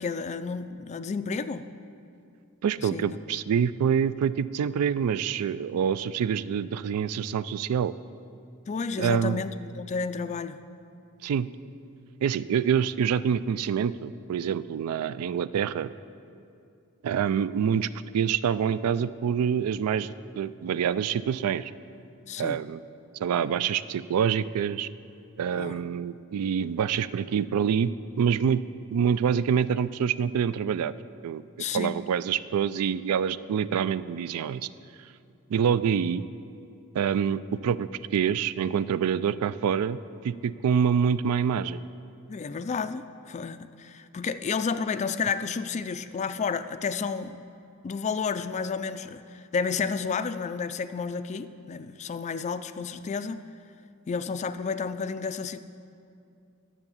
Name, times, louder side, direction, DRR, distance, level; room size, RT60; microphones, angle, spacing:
voice 1, 0.0-1.6 2.8-3.2 8.7-10.6 22.3-22.6 25.6-25.8 31.6-31.9 42.3-47.4 47.8-53.4 54.1-55.6, left 5 dB, 30° left, 12 dB, 0.3 m, -31 dB
voice 2, 2.6-7.9 9.0-9.4 11.2-11.5 12.2-15.9 17.0-21.7 22.4-22.8 23.2-24.9 25.4-27.9 28.2-28.6 28.9-30.9 31.2-31.4 31.7-34.7 35.5-36.2 36.9-40.0 40.2-41.8, right 7 dB, 80° right, 16 dB, 0.3 m, -26 dB
10.5 x 6.8 x 7.1 m, 2.5 s
head